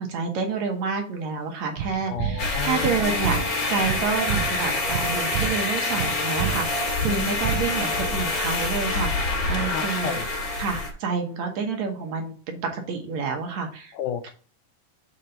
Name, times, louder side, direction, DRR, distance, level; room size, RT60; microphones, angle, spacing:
voice 1, 0.0-10.2 10.6-13.9 14.2-14.3, right 5 dB, 65° right, 3 dB, 2.1 m, -29 dB
sound 1, 1.8-8.1, right 9 dB, 85° right, 2.4 m, -31 dB
voice 2, 2.1-2.9 7.1-7.5 9.6-10.3 13.9-14.3, left 9 dB, 80° left, 8 dB, 2.1 m, -32 dB
sound 2, 2.4-10.9, left 3 dB, 35° left, 1.6 m, -26 dB
7.3 x 4.4 x 3.9 m, 0.41 s
omnidirectional pair, 3.8 m